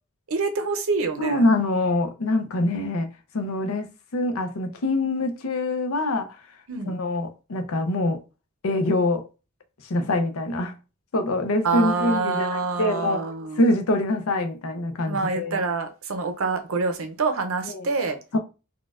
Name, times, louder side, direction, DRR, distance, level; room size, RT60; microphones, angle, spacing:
voice 1, 0.3-1.5 6.7-7.0 11.6-13.6 15.1-18.2, right 4 dB, 80° right, 0.6 m, -26 dB
voice 2, 1.2-6.3 6.9-8.2 8.6-9.3 9.8-10.7 11.1-13.2 13.6-15.6 17.7-17.9 18.3-18.4, left 2 dB, 85° left, 0.6 m, -24 dB
4.1 x 2.2 x 2.4 m
head